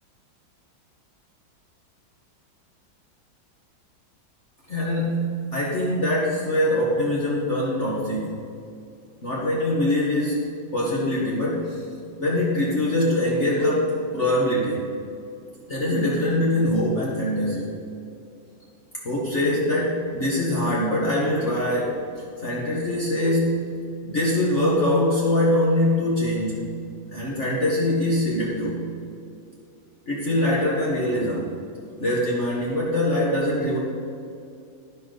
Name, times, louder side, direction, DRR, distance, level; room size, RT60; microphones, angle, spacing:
voice 1, 4.7-5.2 5.5-8.4 9.2-10.4 10.7-11.8 12.2-14.8 15.7-17.7 18.9-22.0 22.4-23.6 24.0-26.6 27.1-28.8 30.1-31.5 32.0-33.8, left 1 dB, 40° left, -5 dB, 1.8 m, -23 dB
11.5 x 10.5 x 4.0 m, 2.5 s
omnidirectional pair, 2.0 m